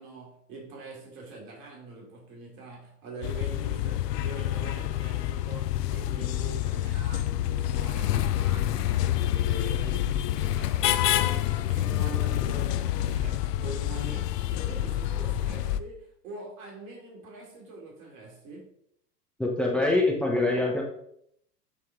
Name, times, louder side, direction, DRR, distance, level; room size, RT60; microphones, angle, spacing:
voice 1, 0.0-18.7, right 3 dB, 55° right, -2 dB, 3.0 m, -44 dB
sound 1, 3.2-15.8, left 13 dB, 75° left, 0.6 m, -27 dB
voice 2, 19.4-20.8, left 2 dB, ahead, 0 dB, 0.9 m, -24 dB
8.2 x 4.7 x 3.6 m, 0.72 s
hypercardioid pair, 110°, 48 cm